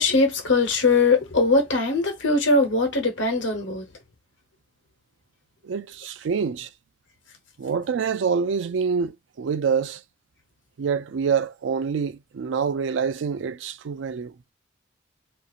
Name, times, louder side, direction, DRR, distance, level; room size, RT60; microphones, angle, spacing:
voice 1, 0.0-3.9, left 3 dB, 75° left, 1.0 m, -21 dB
voice 2, 5.6-6.7 7.6-10.0 10.8-14.3, right 6 dB, 75° right, 0.4 m, -26 dB
2.7 x 2.4 x 2.7 m
head